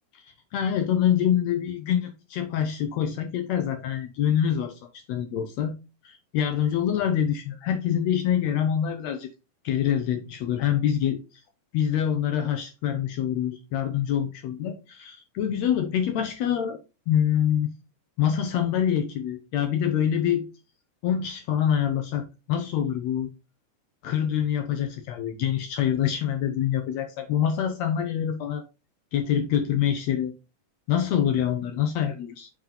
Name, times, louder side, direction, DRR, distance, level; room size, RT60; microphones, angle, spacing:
voice 1, 0.1-4.8 5.1-5.7 6.0-9.3 9.6-11.4 11.7-17.7 18.2-20.5 21.0-23.3 24.0-28.6 29.1-30.3 30.9-32.5, left 9 dB, 80° left, 1.5 m, -25 dB
7.2 x 3.7 x 3.6 m
omnidirectional pair, 3.7 m